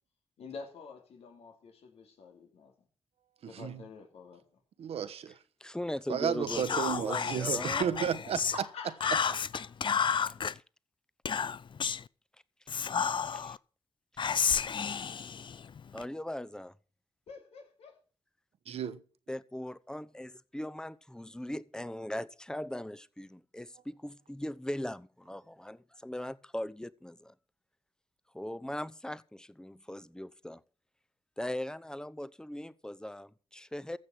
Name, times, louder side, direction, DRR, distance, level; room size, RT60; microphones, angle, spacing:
voice 1, 0.4-2.7 3.5-4.4 8.5-9.7 17.3-18.0, left 5 dB, 85° left, 2.7 m, -46 dB
voice 2, 3.4-3.8 4.8-5.4 6.1-8.4 18.7-19.0, right 8 dB, 80° right, 1.1 m, -33 dB
voice 3, 5.6-8.0 10.3-10.4 13.3-13.6 14.6-14.7 15.9-16.7 19.3-27.3 28.3-30.6 31.4-34.0, left 1 dB, 5° left, 0.8 m, -39 dB
Whispering, 6.5-8.6 9.0-10.5 11.2-12.1 12.7-13.6 14.2-16.0, left 7 dB, 50° left, 0.5 m, -31 dB
15.0 x 6.4 x 7.4 m
cardioid pair, 55°, 10 cm